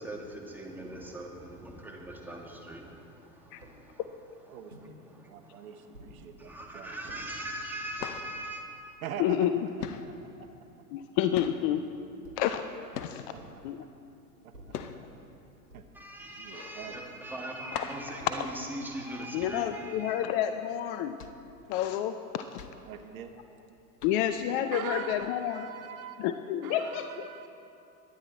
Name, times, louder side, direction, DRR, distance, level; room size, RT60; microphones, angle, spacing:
voice 1, 0.0-4.0 5.1-5.7 6.4-8.6 15.9-20.2, right 1 dB, 5° right, -1 dB, 2.2 m, -41 dB
sound 1, 3.6-3.8 4.7-4.9 5.9-6.2 7.1-7.2 8.0-8.3 9.1-9.2 9.4-10.4 12.2-12.6 13.3-13.7 14.5-14.9 15.7-16.0 16.8-17.1 18.2-18.4 19.4-19.8, right 1 dB, 90° right, 3.0 m, -53 dB
voice 2, 4.5-4.9 5.2-7.1 9.0-9.5 10.4-10.5 13.3-13.4 14.4-14.8 15.7-15.8 16.4-17.2 19.2-19.3 22.8-23.3 24.7-26.3 26.6-27.5, right 8 dB, 65° right, 7 dB, 1.2 m, -42 dB
sound 2, 7.0-7.3 7.6-9.5 9.8-13.5 14.0-19.3 19.6-19.7 20.1-20.3 20.9-23.6 24.0-24.5 25.2-25.3, left 7 dB, 75° left, 1.0 m, -43 dB
voice 3, 9.2-9.5 10.9-11.8 12.4-12.6 13.0-13.2 13.6-13.8 17.7-17.8 18.4-18.5 19.3-21.2 21.7-22.6 24.0-25.7 26.2-27.3, left 11 dB, 35° left, 9 dB, 0.5 m, -29 dB
22.0 x 9.8 x 4.3 m, 2.7 s
figure-of-eight pair, 95°, 47 cm